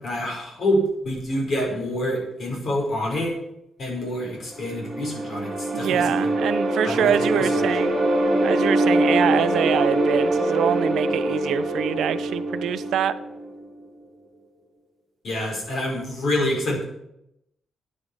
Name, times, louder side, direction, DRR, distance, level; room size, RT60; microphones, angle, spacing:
voice 1, 0.0-3.3 3.8-6.0 6.9-7.6 15.2-16.8, left 1 dB, 45° left, -1 dB, 5.5 m, -27 dB
sound 1, 4.5-13.6, right 1 dB, 20° right, 3.1 m, -23 dB
voice 2, 5.7-8.0 8.4-13.2, right 9 dB, 75° right, 14 dB, 0.8 m, -25 dB
9.7 x 8.5 x 9.9 m, 0.82 s
wide cardioid pair, 175°, 0 cm